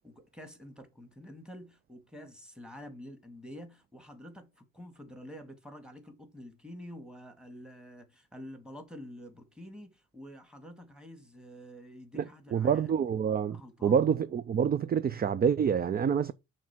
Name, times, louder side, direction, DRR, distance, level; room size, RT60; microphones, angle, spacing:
voice 1, 0.0-12.9 13.5-14.0, equal, 5° right, 1.9 m, -48 dB
voice 2, 12.5-13.6 13.8-16.3, right 7 dB, 30° right, 0.4 m, -27 dB
6.4 x 3.7 x 6.0 m
cardioid pair, 90°, 30 cm